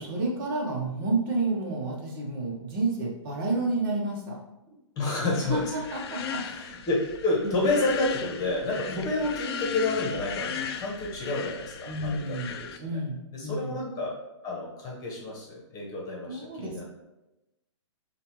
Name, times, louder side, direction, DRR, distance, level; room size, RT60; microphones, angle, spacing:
voice 1, 0.0-4.4 5.4-6.4 7.4-7.6 8.8-9.1 11.9-13.8 16.3-16.9, right 2 dB, 45° right, -2 dB, 1.1 m, -30 dB
voice 2, 5.0-5.6 6.4-12.8 13.3-14.2 14.4-16.9, left 2 dB, 25° left, -3 dB, 1.3 m, -29 dB
sound 1, 5.3-12.8, left 7 dB, 55° left, 0.4 m, -37 dB
6.9 x 2.5 x 3.1 m, 0.97 s
hypercardioid pair, 135°, 16 cm